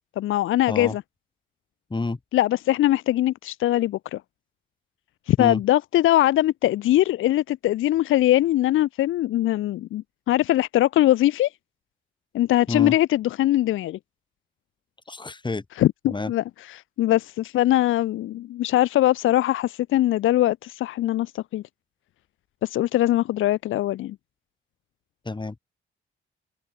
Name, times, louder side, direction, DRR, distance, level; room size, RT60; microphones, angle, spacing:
voice 1, 0.2-1.0 2.3-4.2 5.3-11.5 12.3-14.0 15.8-21.6 22.6-24.2, left 14 dB, 75° left, 0.4 m, -22 dB
voice 2, 15.1-15.6 16.1-16.3 25.2-25.6, left 3 dB, 20° left, 3.1 m, -28 dB
cardioid pair, 90°, 21 cm